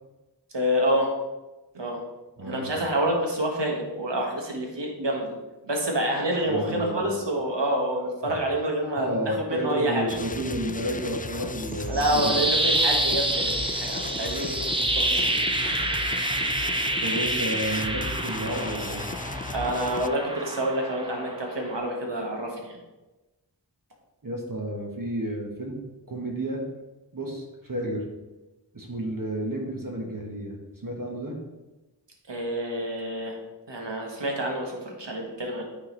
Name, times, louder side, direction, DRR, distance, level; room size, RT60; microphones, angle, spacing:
voice 1, 0.5-1.1 1.7-2.0 2.4-5.3 5.6-10.1 11.9-15.2 15.6-15.9 19.5-22.8 32.3-33.4 33.7-35.6, right 1 dB, 80° right, 0 dB, 1.5 m, -28 dB
voice 2, 2.4-2.7 6.5-7.0 8.2-8.3 9.0-12.3 17.0-19.1 24.2-25.8 26.1-26.6 27.1-28.0 28.7-30.6 30.8-31.4, right 1 dB, 50° right, -1 dB, 1.4 m, -31 dB
sound 1, 10.1-20.1, left 4 dB, 20° left, 0.3 m, -36 dB
sound 2, 11.7-21.8, right 1 dB, 10° right, 0.8 m, -28 dB
9.1 x 4.1 x 3.9 m, 1.1 s
wide cardioid pair, 50°, 43 cm